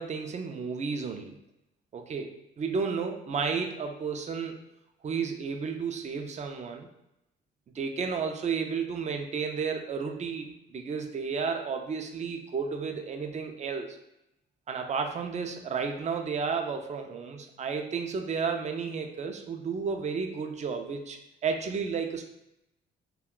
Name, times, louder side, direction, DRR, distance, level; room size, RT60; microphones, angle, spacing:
voice 1, 0.0-1.4 1.9-4.6 5.0-6.9 7.7-14.0 14.7-22.2, right 5 dB, 35° right, 5 dB, 0.4 m, -32 dB
2.3 x 2.2 x 3.7 m, 0.87 s
cardioid pair, 90°, 20 cm